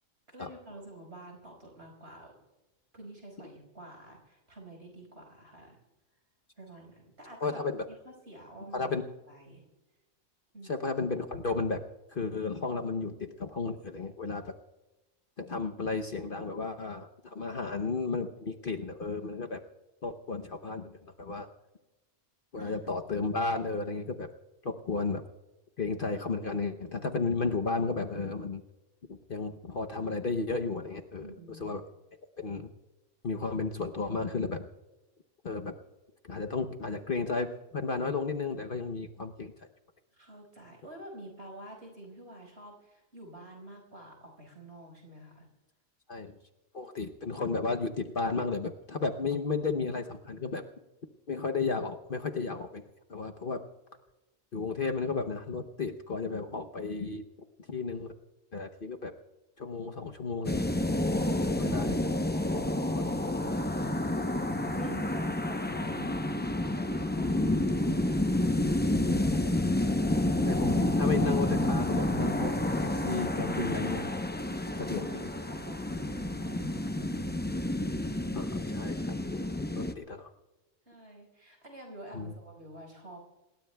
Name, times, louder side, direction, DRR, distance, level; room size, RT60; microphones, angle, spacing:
voice 1, 0.3-2.3 2.9-5.8 6.6-7.6 7.9-8.9 9.3-9.6 10.5-10.8 22.6-22.8 31.2-31.8 40.1-45.5 64.7-69.6 74.6-77.3 80.9-83.2, right 1 dB, 55° right, 1 dB, 5.4 m, -48 dB
voice 2, 7.4-7.9 8.7-9.0 10.6-11.8 12.1-14.5 15.4-19.6 20.0-21.5 22.5-24.3 24.6-25.2 25.8-28.6 29.1-31.8 32.4-32.7 33.2-34.7 35.4-35.7 36.2-39.5 46.1-46.3 46.7-50.6 51.3-52.8 53.1-53.6 54.5-57.2 57.7-58.1 58.5-59.1 59.6-60.6 61.5-62.1 62.5-62.6 62.9-63.1 63.5-63.7 70.5-74.1 74.8-75.3 78.3-79.5 79.7-80.3 82.1-82.3, left 4 dB, 50° left, 4 dB, 0.9 m, -33 dB
sound 1, 60.4-79.9, left 1 dB, 15° left, 0.4 m, -29 dB
27.5 x 20.5 x 2.3 m, 1.1 s
omnidirectional pair, 1.3 m